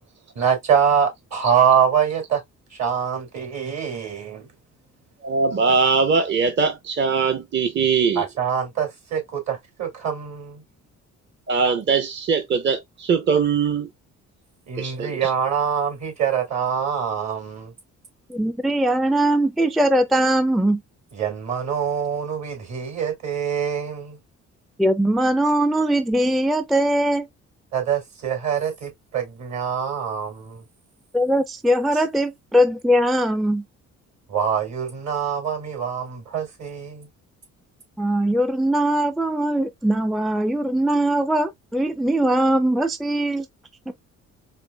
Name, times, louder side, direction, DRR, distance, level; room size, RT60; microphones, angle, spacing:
voice 1, 0.3-2.4 2.8-4.5 8.2-10.6 14.7-17.7 21.1-24.2 27.7-30.6 31.9-32.0 34.3-37.1, right 7 dB, 65° right, 2.5 m, -24 dB
voice 2, 5.2-8.2 11.5-13.9 14.8-15.3, right 5 dB, 40° right, 0.7 m, -21 dB
voice 3, 18.3-20.8 24.8-27.3 31.1-33.6 38.0-43.5 43.9-44.0, right 1 dB, ahead, 0.3 m, -21 dB
4.3 x 3.1 x 2.2 m
cardioid pair, 90°, 30 cm